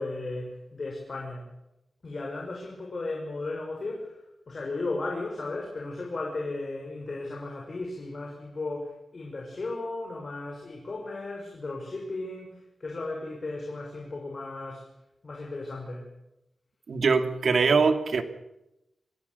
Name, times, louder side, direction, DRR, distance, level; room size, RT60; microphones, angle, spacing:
voice 1, 0.0-1.5 2.0-14.9 15.2-16.1, left 2 dB, 45° left, 0 dB, 6.0 m, -35 dB
voice 2, 16.9-18.2, right 4 dB, 70° right, 7 dB, 2.6 m, -22 dB
26.0 x 17.5 x 7.0 m, 0.89 s
wide cardioid pair, 100°, 0 cm